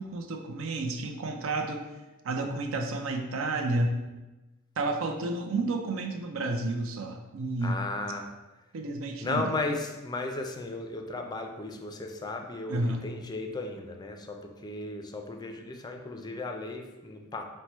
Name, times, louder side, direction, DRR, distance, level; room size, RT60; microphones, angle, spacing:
voice 1, 0.0-1.8 2.2-3.9 4.8-7.8 8.7-9.5 12.7-13.1, right 2 dB, 75° right, 5 dB, 0.5 m, -31 dB
voice 2, 7.6-8.3 9.2-17.4, left 2 dB, 20° left, 4 dB, 0.3 m, -35 dB
4.6 x 2.1 x 4.2 m, 1.1 s
head